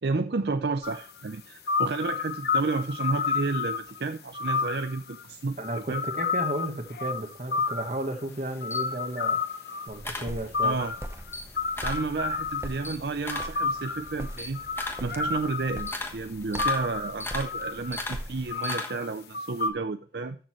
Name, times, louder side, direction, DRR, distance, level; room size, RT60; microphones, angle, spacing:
voice 1, 0.0-6.0 10.6-10.9 11.8-14.6 15.0-20.4, right 3 dB, 65° right, 8 dB, 0.6 m, -31 dB
sound 1, 0.8-1.0 1.7-4.1 4.3-5.2 5.6-8.1 8.6-10.0 10.5-12.9 13.3-16.0 16.6-18.0 18.5-19.1 19.3-19.7, left 5 dB, 65° left, 1.1 m, -30 dB
voice 2, 5.6-9.4 9.9-10.8, right 1 dB, 40° right, 6 dB, 1.4 m, -33 dB
Camera, 8.3-10.9 11.2-12.1 12.5-19.2, left 2 dB, 15° left, 1.2 m, -38 dB
sound 2, 9.9-18.5, equal, 15° right, 0.9 m, -42 dB
13.5 x 6.6 x 3.1 m, 0.40 s
head